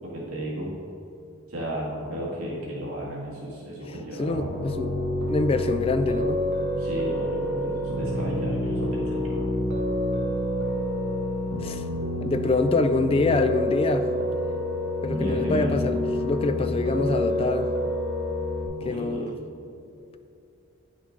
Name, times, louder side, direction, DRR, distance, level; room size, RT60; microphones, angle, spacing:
voice 1, 0.0-0.7 1.5-4.6 6.8-9.5 15.1-15.7 18.8-19.3, right 1 dB, 75° right, -5 dB, 1.9 m, -34 dB
voice 2, 3.9-4.9 5.2-6.4 11.6-11.8 12.2-14.1 15.0-17.7 18.9-19.4, left 3 dB, 25° left, 9 dB, 0.3 m, -25 dB
Piano, 4.3-18.7, left 1 dB, 55° right, 1.3 m, -28 dB
9.5 x 6.2 x 3.8 m, 2.7 s
head